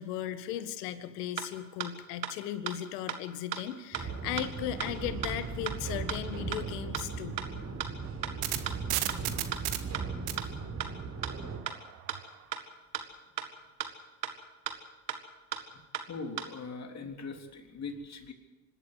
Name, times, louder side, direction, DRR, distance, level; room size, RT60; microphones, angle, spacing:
voice 1, 0.0-7.4, left 11 dB, 70° left, 12 dB, 1.7 m, -37 dB
sound 1, 1.4-1.5 1.8-1.9 2.2-2.3 2.7-2.8 3.1-3.2 3.5-3.6 3.9-4.0 4.4-4.5 4.8-4.9 5.2-5.3 5.7-5.8 6.1-6.2 6.5-6.6 6.9-7.0 7.4-7.5 7.8-7.9 8.2-8.3 8.7-8.8 9.1-9.2 9.5-9.6 9.9-10.0 10.4-10.5 10.8-10.9 11.2-11.3 11.7-11.8 12.1-12.2 12.5-12.6 12.9-13.0 13.4-13.5 13.8-13.9 14.2-14.3 14.7-14.8 15.1-15.2 15.5-15.6 15.9-16.0 16.4-16.5, right 9 dB, 90° right, 1.9 m, -34 dB
sound 2, 3.9-11.6, right 4 dB, 30° right, 4.2 m, -38 dB
sound 3, 8.0-12.3, right 16 dB, 65° right, 1.9 m, -35 dB
voice 2, 16.1-18.3, left 4 dB, 30° left, 4 dB, 3.6 m, -41 dB
26.0 x 13.0 x 8.2 m, 1.1 s
hypercardioid pair, 85°, 49 cm